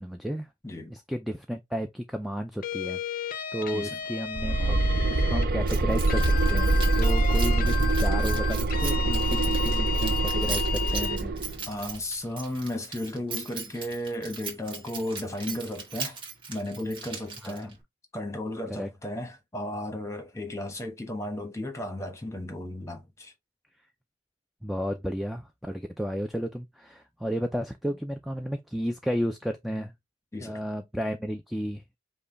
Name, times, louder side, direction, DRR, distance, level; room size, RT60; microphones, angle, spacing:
voice 1, 0.0-0.5 0.9-3.0 3.5-4.8 5.0-11.4 17.4-17.7 18.8-18.9 24.6-29.9 30.4-32.0, equal, ahead, 0.3 m, -33 dB
voice 2, 0.6-0.9 3.7-4.0 11.7-16.2 16.5-17.8 18.1-23.3 30.3-30.6, left 1 dB, 15° left, 1.1 m, -34 dB
sound 1, 2.6-5.5 6.1-11.2, left 8 dB, 45° left, 0.6 m, -33 dB
sound 2, 4.3-11.6, right 2 dB, 50° right, 0.6 m, -24 dB
Keys jangling, 5.7-17.8, right 5 dB, 25° right, 1.4 m, -39 dB
5.4 x 2.2 x 3.9 m
head